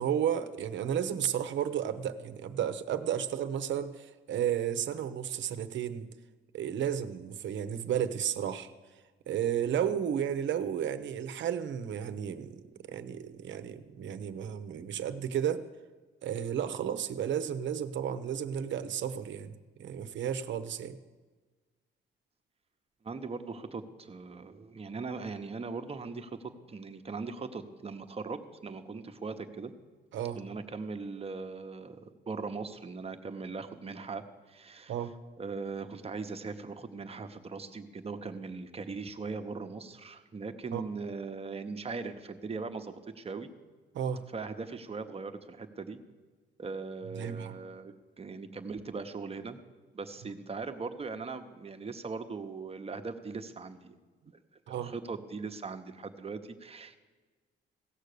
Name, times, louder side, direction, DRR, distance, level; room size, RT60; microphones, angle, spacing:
voice 1, 0.0-6.1 6.5-8.7 9.3-12.6 12.9-15.6 16.2-21.0 30.1-30.4 34.9-35.1 40.7-40.8 43.9-44.2 47.1-47.6 54.7-54.9, right 9 dB, 70° right, 11 dB, 0.8 m, -33 dB
voice 2, 23.0-29.7 30.3-35.0 35.4-43.5 44.2-46.0 46.6-49.6 49.9-53.9 54.7-57.0, right 4 dB, 30° right, 7 dB, 1.0 m, -40 dB
16.5 x 6.6 x 6.7 m, 1.4 s
cardioid pair, 90°, 20 cm